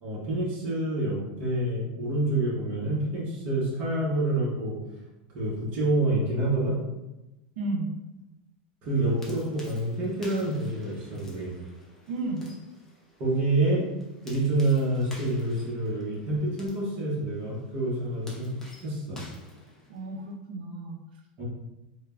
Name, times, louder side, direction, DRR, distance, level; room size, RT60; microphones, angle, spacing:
voice 1, 0.0-4.8 5.3-6.8 8.8-11.5 13.2-13.9 14.2-18.5 18.8-19.2 21.4-21.5, right 2 dB, 35° right, -6 dB, 0.7 m, -27 dB
voice 2, 7.6-7.9 12.1-12.5 19.9-21.0, right 2 dB, 80° right, 2 dB, 0.5 m, -32 dB
sound 1, 8.8-20.3, left 1 dB, 10° left, 0.4 m, -51 dB
3.2 x 2.0 x 2.3 m, 0.98 s
supercardioid pair, 170°, 5 cm